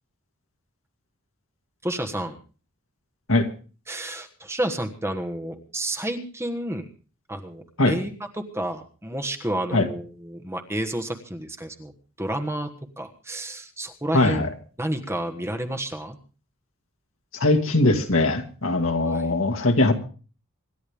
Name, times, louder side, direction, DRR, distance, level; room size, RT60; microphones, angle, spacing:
voice 1, 1.8-2.4 3.9-6.9 7.3-11.9 12.2-14.5 14.8-16.2 19.0-19.4, right 1 dB, 10° right, 5 dB, 1.4 m, -30 dB
voice 2, 14.1-14.5 17.3-19.9, left 2 dB, 65° left, 4 dB, 2.1 m, -21 dB
26.0 x 12.0 x 3.5 m, 0.38 s
head